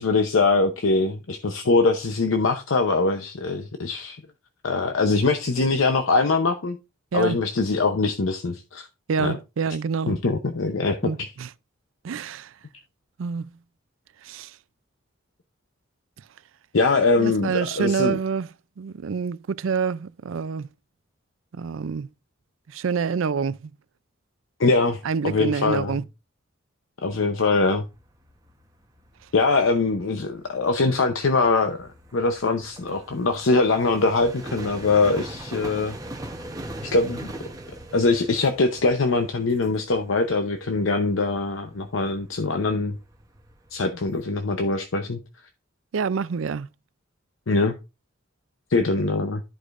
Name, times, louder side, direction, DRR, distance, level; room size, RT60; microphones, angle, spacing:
voice 1, 0.0-4.2 4.6-6.8 7.1-8.9 9.2-9.4 10.1-11.1 16.7-18.2 24.6-26.0 27.0-27.9 29.3-36.0 36.8-37.3 37.9-43.0 43.7-45.2 47.5-47.7 48.7-49.4, left 3 dB, 90° left, 0.8 m, -22 dB
voice 2, 9.1-10.1 11.0-11.5 12.0-12.5 13.2-13.5 14.2-14.5 17.2-18.5 18.8-20.7 21.5-22.1 22.7-23.7 25.0-26.0 45.9-46.7, right 5 dB, 85° right, 0.4 m, -27 dB
sound 1, 27.7-44.2, right 1 dB, 20° right, 1.0 m, -41 dB
13.0 x 4.9 x 2.5 m
head